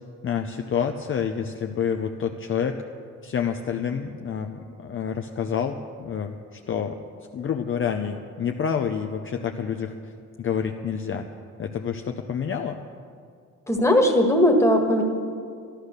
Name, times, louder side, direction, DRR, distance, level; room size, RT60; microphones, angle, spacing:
voice 1, 0.2-2.8 3.2-7.0 7.3-10.1 10.4-11.3 11.6-12.8, left 7 dB, 40° left, 4 dB, 0.6 m, -28 dB
voice 2, 13.7-15.0, left 1 dB, 10° left, 1 dB, 1.7 m, -18 dB
13.0 x 11.5 x 6.6 m, 2.3 s
cardioid pair, 120°, 32 cm